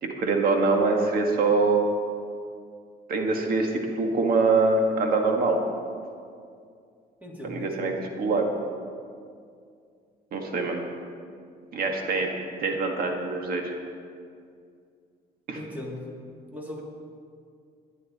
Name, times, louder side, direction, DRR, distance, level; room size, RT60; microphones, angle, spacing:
voice 1, 0.0-1.8 3.1-5.6 7.4-8.5 10.3-10.8 11.7-12.3 12.6-13.7 15.5-15.6, right 3 dB, 60° right, 2 dB, 1.7 m, -24 dB
voice 2, 7.2-7.9 15.5-16.1 16.5-16.8, left 1 dB, 10° right, -2 dB, 2.6 m, -38 dB
21.0 x 9.4 x 4.2 m, 2.3 s
cardioid pair, 110°, 17 cm